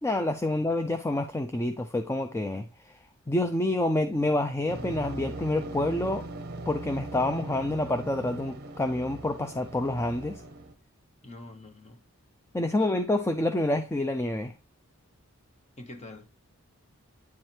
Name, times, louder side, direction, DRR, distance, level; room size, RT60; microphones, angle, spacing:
voice 1, 0.0-2.9 3.3-6.2 6.7-10.4 12.5-14.5, left 1 dB, 10° left, 0.3 m, -28 dB
sound 1, 4.7-10.7, right 2 dB, 45° right, 0.8 m, -40 dB
voice 2, 11.2-12.0 15.8-16.3, left 2 dB, 30° left, 1.1 m, -45 dB
9.5 x 3.2 x 4.4 m
head